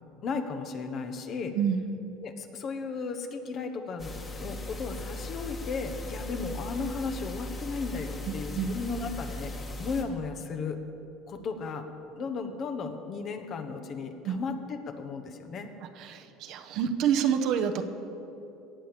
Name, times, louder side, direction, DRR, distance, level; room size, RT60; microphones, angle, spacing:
voice 1, 0.2-1.6 2.2-9.5 9.8-10.8 11.3-11.9 12.1-15.7, left 4 dB, 45° left, 7 dB, 1.3 m, -35 dB
sound 1, 4.0-10.0, left 1 dB, 25° left, 1.9 m, -38 dB
voice 2, 8.3-8.7 14.2-14.4 16.0-17.8, right 8 dB, 60° right, 7 dB, 1.0 m, -28 dB
18.0 x 7.0 x 7.5 m, 2.9 s
supercardioid pair, 115°, 0 cm